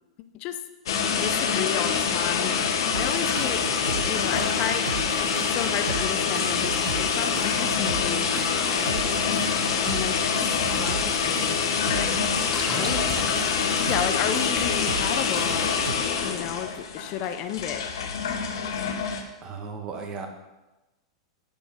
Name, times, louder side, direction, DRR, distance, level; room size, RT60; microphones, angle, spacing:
sound 1, 0.9-19.2, left 6 dB, 70° left, 1.2 m, -26 dB
voice 1, 1.2-9.1 9.8-11.6 11.9-12.3 12.7-13.0 13.9-15.8 16.2-17.9, left 9 dB, 45° left, 9 dB, 0.6 m, -33 dB
sound 2, 2.9-16.0, right 5 dB, 85° right, 1.0 m, -36 dB
voice 2, 9.1-9.5 12.7-13.0 19.4-20.3, right 5 dB, 35° right, 4 dB, 1.6 m, -36 dB
sound 3, 9.9-16.6, left 4 dB, 25° left, 1.7 m, -40 dB
11.0 x 4.6 x 5.3 m, 1.1 s
hypercardioid pair, 105°, 3 cm